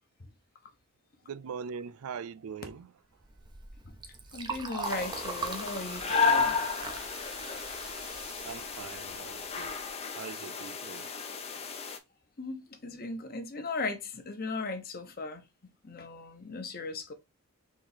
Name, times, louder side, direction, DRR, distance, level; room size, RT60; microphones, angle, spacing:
voice 1, 1.2-2.9 8.3-11.1, right 6 dB, 75° right, 0.4 m, -42 dB
Liquid, 3.2-9.9, right 4 dB, 20° right, 0.5 m, -41 dB
voice 2, 4.3-6.6 12.4-15.4 15.8-17.1, left 3 dB, 40° left, 0.9 m, -37 dB
sound 1, 4.8-12.0, left 5 dB, 25° left, 0.5 m, -33 dB
4.1 x 3.0 x 4.1 m
head